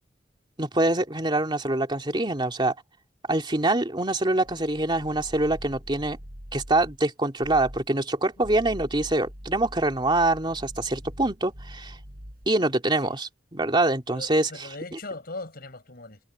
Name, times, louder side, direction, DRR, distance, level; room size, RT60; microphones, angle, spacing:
voice 1, 0.6-2.7 3.3-6.2 6.5-12.0 12.5-14.5, right 2 dB, 25° right, 2.5 m, -25 dB
sound 1, 4.4-7.0 7.4-7.9 8.3-12.6, equal, 55° right, 7.3 m, -43 dB
voice 2, 14.1-16.2, left 2 dB, 60° left, 5.7 m, -39 dB
head